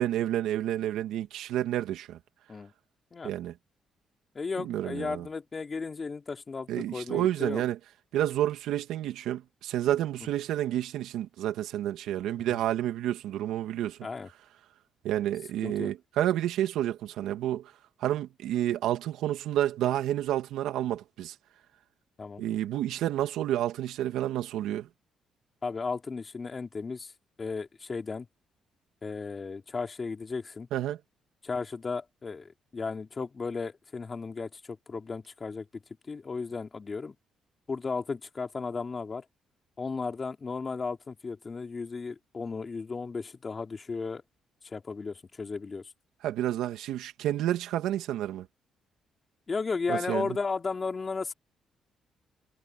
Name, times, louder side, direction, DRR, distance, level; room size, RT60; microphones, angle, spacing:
voice 1, 0.0-2.2 3.2-3.5 4.6-5.3 6.7-7.8 8.1-14.0 15.0-17.7 18.0-21.3 22.4-24.9 30.7-31.0 46.2-48.5 49.9-50.4, right 12 dB, 85° right, 2.5 m, -30 dB
voice 2, 4.4-7.6 12.4-12.6 14.0-14.3 15.6-15.9 22.2-22.4 25.6-27.1 27.4-28.3 29.0-30.7 31.4-35.7 36.1-37.1 37.7-39.2 39.8-44.2 44.6-45.8 49.5-51.3, left 4 dB, 35° left, 3.7 m, -35 dB
cardioid pair, 90°, 0 cm